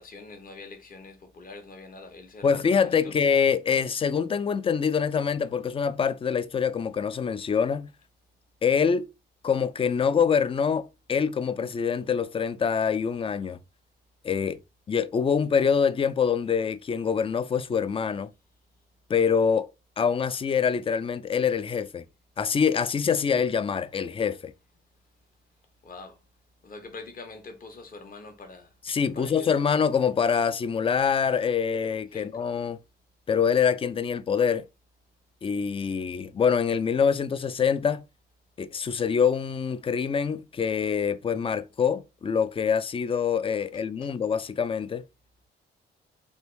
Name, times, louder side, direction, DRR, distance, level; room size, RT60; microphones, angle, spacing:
voice 1, 0.0-3.2 25.8-26.2 26.6-28.7 29.1-29.5 32.1-32.6 43.7-44.1, left 3 dB, 45° left, 1.0 m, -45 dB
voice 2, 2.4-7.9 8.6-9.1 9.4-13.6 14.2-14.6 14.9-18.3 19.1-19.7 20.0-22.0 22.4-24.5 28.9-32.8 33.3-34.7 35.4-38.0 38.6-45.0, left 6 dB, 25° left, 0.4 m, -25 dB
3.2 x 2.6 x 3.1 m
supercardioid pair, 70°, 21 cm